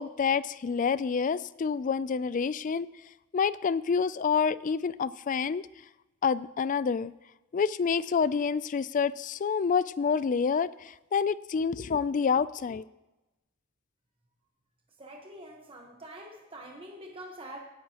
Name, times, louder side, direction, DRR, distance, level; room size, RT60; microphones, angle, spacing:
voice 1, 0.0-2.9 3.3-5.6 6.2-7.1 7.5-12.8, left 6 dB, 35° left, 18 dB, 0.3 m, -28 dB
voice 2, 15.0-17.6, right 1 dB, 25° right, 0 dB, 1.2 m, -45 dB
17.5 x 10.0 x 3.0 m, 1.0 s
head